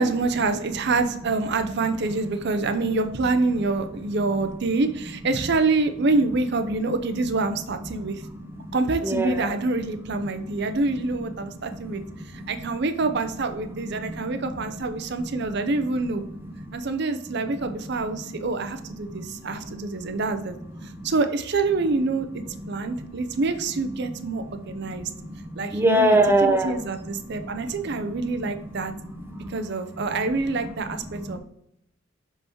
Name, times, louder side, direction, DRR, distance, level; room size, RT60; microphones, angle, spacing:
voice 1, 0.0-8.2 8.7-12.0 12.3-16.2 16.7-20.6 21.0-25.1 25.6-28.9 29.5-31.4, right 3 dB, 60° right, 8 dB, 0.6 m, -26 dB
voice 2, 8.2-8.8 9.0-9.5 10.4-10.5 11.2-12.5 14.0-14.7 15.1-15.6 16.3-16.4 16.6-16.8 18.2-18.4 18.8-20.1 20.8-21.1 22.7-23.1 24.1-24.2 24.7-28.1 29.1-29.6 29.9-30.0 30.9-31.4, right 1 dB, 10° right, 4 dB, 0.8 m, -28 dB
5.9 x 5.4 x 3.0 m, 0.74 s
head